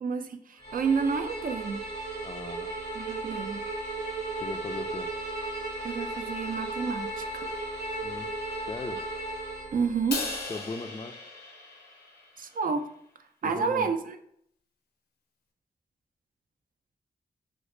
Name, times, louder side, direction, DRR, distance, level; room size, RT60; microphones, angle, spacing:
voice 1, 0.0-0.4 0.7-1.8 3.0-3.6 5.8-7.7 9.7-10.3 12.4-12.9 13.4-14.2, right 5 dB, 60° right, 8 dB, 0.4 m, -29 dB
sound 1, 0.6-10.5, right 3 dB, 30° right, 0.7 m, -49 dB
Bowed string instrument, 0.6-9.7, right 2 dB, 90° right, 0.8 m, -35 dB
voice 2, 2.2-2.8 4.4-5.1 8.0-8.3 8.7-9.0 10.5-11.2 13.4-13.9, left 3 dB, 30° left, 8 dB, 0.3 m, -38 dB
Crash cymbal, 10.1-12.5, left 3 dB, 85° left, 0.5 m, -37 dB
3.9 x 2.1 x 3.1 m, 0.70 s
cardioid pair, 45°, 16 cm